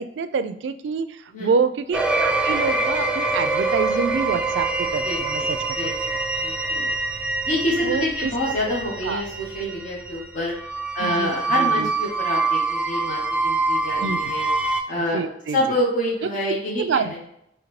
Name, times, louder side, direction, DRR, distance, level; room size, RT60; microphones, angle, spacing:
voice 1, 0.0-5.6 7.8-8.3 9.0-9.2 11.0-11.9 14.0-14.3 14.9-15.6 16.2-17.3, right 5 dB, 80° right, 11 dB, 0.3 m, -27 dB
sound 1, 1.9-14.8, right 3 dB, 5° right, 0.3 m, -25 dB
voice 2, 5.0-5.5 5.8-6.9 7.4-10.5 10.9-14.5 14.9-15.2 15.5-17.2, left 1 dB, 45° left, -4 dB, 1.0 m, -27 dB
5.0 x 3.0 x 3.1 m, 0.77 s
head